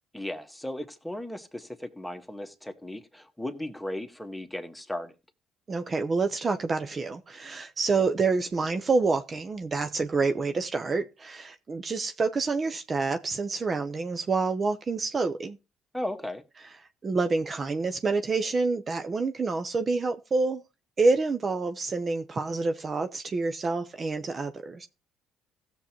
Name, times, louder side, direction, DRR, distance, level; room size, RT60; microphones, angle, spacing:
voice 1, 0.1-5.1 15.9-16.4, left 1 dB, 5° left, 1.7 m, -36 dB
voice 2, 5.7-15.6 17.0-20.6 21.0-24.9, right 4 dB, 40° right, 0.8 m, -27 dB
16.5 x 7.1 x 3.0 m
hypercardioid pair, 60°, 0 cm